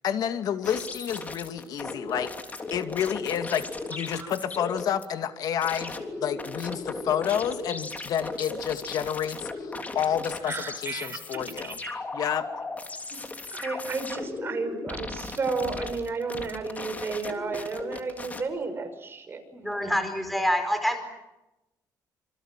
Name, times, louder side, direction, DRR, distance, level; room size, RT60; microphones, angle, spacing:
voice 1, 0.0-2.3 2.7-11.8 12.1-12.5, left 9 dB, 65° left, 8 dB, 2.4 m, -29 dB
sound 1, 0.6-5.1 5.6-18.4, left 3 dB, 20° left, 3.4 m, -37 dB
voice 2, 10.5-11.2 11.6-12.0 13.5-19.4, right 4 dB, 30° right, 7 dB, 5.8 m, -32 dB
voice 3, 19.5-21.0, equal, ahead, 7 dB, 4.8 m, -26 dB
28.0 x 27.0 x 7.6 m, 0.96 s
cardioid pair, 120°, 7 cm